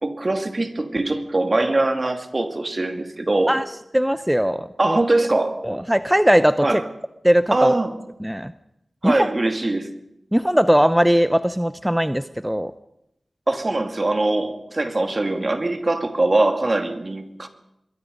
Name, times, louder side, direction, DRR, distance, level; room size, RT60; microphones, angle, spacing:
voice 1, 0.0-3.6 4.8-5.7 6.6-6.9 7.5-7.9 9.0-10.0 13.5-17.5, right 2 dB, 45° right, 6 dB, 2.6 m, -22 dB
voice 2, 3.9-5.0 5.6-6.7 7.2-7.7 8.2-8.5 9.0-9.2 10.3-12.7, equal, 5° right, 12 dB, 0.7 m, -19 dB
26.0 x 21.5 x 5.4 m, 0.81 s
wide cardioid pair, 55°, 0 cm